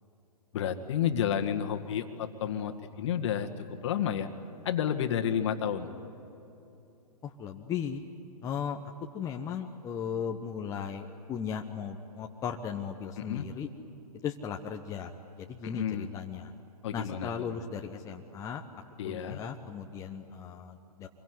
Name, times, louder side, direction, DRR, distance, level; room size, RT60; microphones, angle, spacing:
voice 1, 0.5-4.3 4.6-5.9 13.2-13.5 15.6-16.1 16.8-17.6 19.0-19.4, left 9 dB, 45° left, 8 dB, 1.9 m, -31 dB
voice 2, 7.2-8.0 8.4-8.8 9.1-13.7 14.2-15.1 15.4-16.5 16.9-18.6 19.0-21.1, left 7 dB, 15° left, 2 dB, 1.1 m, -37 dB
26.0 x 22.5 x 9.6 m, 2.9 s
hypercardioid pair, 130°, 20 cm